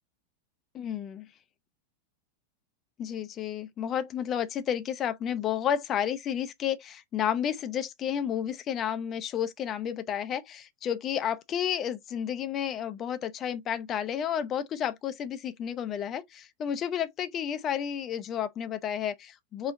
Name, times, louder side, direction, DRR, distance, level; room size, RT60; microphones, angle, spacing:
voice 1, 0.7-1.3 3.0-19.7, left 9 dB, 30° left, 0.5 m, -31 dB
3.8 x 2.0 x 4.0 m
figure-of-eight pair, 90°, 0 cm